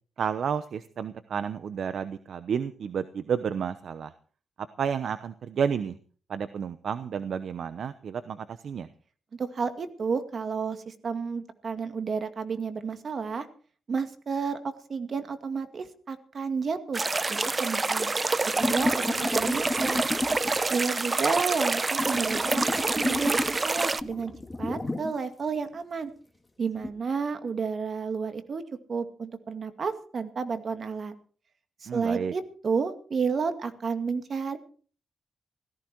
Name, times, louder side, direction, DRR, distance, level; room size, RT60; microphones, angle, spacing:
voice 1, 0.2-4.1 4.6-6.0 6.3-8.9 21.3-21.4 31.9-32.3, right 7 dB, 70° right, 12 dB, 0.9 m, -31 dB
voice 2, 9.4-13.5 13.9-17.0 17.3-18.1 18.6-20.0 20.7-24.3 24.6-26.1 26.6-28.6 28.9-31.1 31.8-34.6, right 5 dB, 55° right, 9 dB, 2.1 m, -31 dB
sound 1, 16.9-24.0, right 3 dB, 30° right, 0.8 m, -27 dB
sound 2, 18.6-20.8 21.7-25.2 25.5-25.6 26.8-26.9, left 2 dB, 20° left, 2.4 m, -32 dB
17.5 x 14.5 x 4.7 m, 0.43 s
cardioid pair, 75°, 0 cm